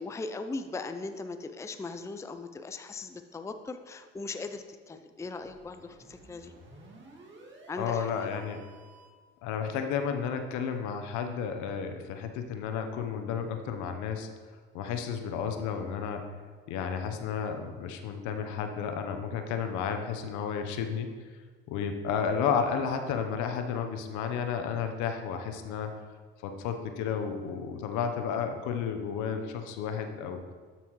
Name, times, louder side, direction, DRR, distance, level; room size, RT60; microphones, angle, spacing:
voice 1, 0.0-6.5 7.7-8.3, left 3 dB, 10° left, 8 dB, 0.5 m, -39 dB
sound 1, 5.4-9.3, right 2 dB, 35° right, 2.0 m, -53 dB
voice 2, 7.8-8.6 9.4-14.3 14.7-16.3 16.7-21.2 21.7-25.9 26.4-30.4, left 7 dB, 70° left, 6 dB, 1.0 m, -32 dB
12.5 x 5.9 x 3.1 m, 1.5 s
hypercardioid pair, 65°, 31 cm